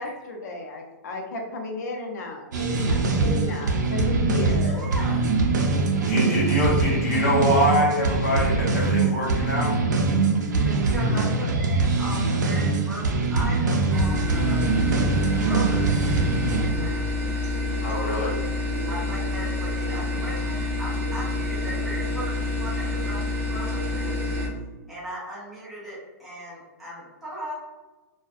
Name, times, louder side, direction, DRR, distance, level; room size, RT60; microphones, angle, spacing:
voice 1, 0.0-4.8, left 3 dB, 70° left, 1 dB, 0.6 m, -33 dB
sound 1, 2.5-16.7, right 3 dB, 85° right, 0.5 m, -23 dB
voice 2, 4.7-5.2 10.7-14.6 15.2-16.1 16.5-17.0 18.8-24.1 24.9-27.5, right 1 dB, ahead, -10 dB, 0.4 m, -38 dB
voice 3, 6.1-9.7 17.8-18.4, equal, 55° left, -5 dB, 1.1 m, -24 dB
sound 2, 13.9-24.5, left 2 dB, 45° right, 0.6 m, -28 dB
2.4 x 2.1 x 2.4 m, 1.2 s
hypercardioid pair, 175°, 9 cm